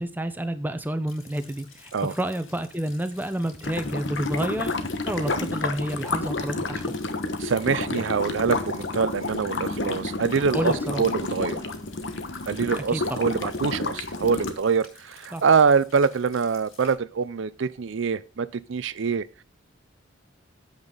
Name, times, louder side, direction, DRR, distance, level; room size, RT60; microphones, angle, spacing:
voice 1, 0.0-7.0 10.5-11.1 12.8-13.5 15.3-15.4, right 1 dB, 10° right, 0.8 m, -30 dB
Rain, 1.1-16.9, left 5 dB, 85° left, 6.3 m, -51 dB
sound 1, 3.6-14.5, left 3 dB, 60° left, 1.2 m, -30 dB
voice 2, 7.4-11.6 12.5-19.2, right 5 dB, 70° right, 0.5 m, -24 dB
8.8 x 8.1 x 3.9 m
head